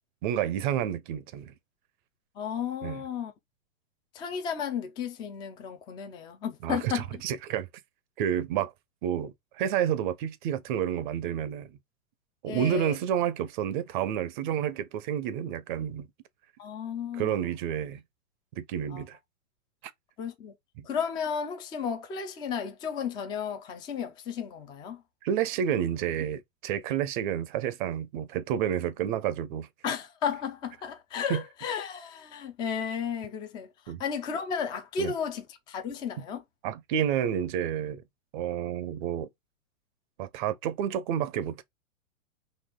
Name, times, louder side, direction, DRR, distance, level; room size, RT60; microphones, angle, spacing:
voice 1, 0.2-1.5 2.8-3.0 6.6-7.7 8.2-8.7 9.0-11.8 12.4-16.1 17.1-18.0 18.6-19.2 20.8-20.9 25.2-29.7 31.3-31.4 33.9-34.0 35.0-35.1 36.6-38.0 38.3-39.3 40.2-41.6, right 9 dB, 35° right, 0.6 m, -30 dB
voice 2, 2.4-3.3 4.1-7.2 12.5-12.9 16.6-17.5 18.9-19.0 20.2-20.5 20.8-25.0 29.8-33.7 34.0-36.4, left 7 dB, 10° left, 0.4 m, -33 dB
4.2 x 2.9 x 3.6 m
hypercardioid pair, 120°, 42 cm